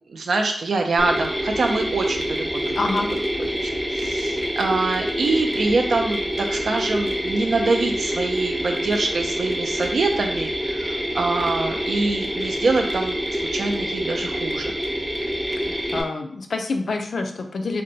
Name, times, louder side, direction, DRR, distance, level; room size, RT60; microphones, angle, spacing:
voice 1, 0.1-2.7 3.6-13.2 13.5-14.7, right 3 dB, 75° right, 4 dB, 0.5 m, -24 dB
Mechanisms, 1.0-16.0, equal, 15° right, 0.5 m, -26 dB
voice 2, 2.8-3.1 15.7-17.8, left 3 dB, 70° left, 4 dB, 0.4 m, -27 dB
2.6 x 2.2 x 3.9 m, 0.63 s
wide cardioid pair, 135°, 0 cm